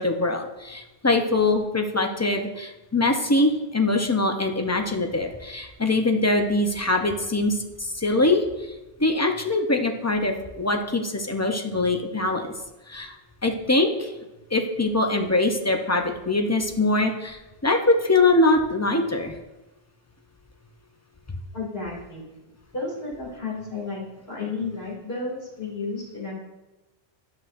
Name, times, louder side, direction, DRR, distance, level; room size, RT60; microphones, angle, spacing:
voice 1, 0.0-8.7 9.0-12.5 12.9-13.2 13.4-14.1 14.5-19.4, left 2 dB, 20° left, 4 dB, 0.6 m, -23 dB
voice 2, 21.5-22.2 22.7-24.0 24.3-26.3, left 3 dB, 70° left, -5 dB, 2.8 m, -32 dB
10.5 x 7.7 x 2.5 m, 1.0 s
omnidirectional pair, 1.1 m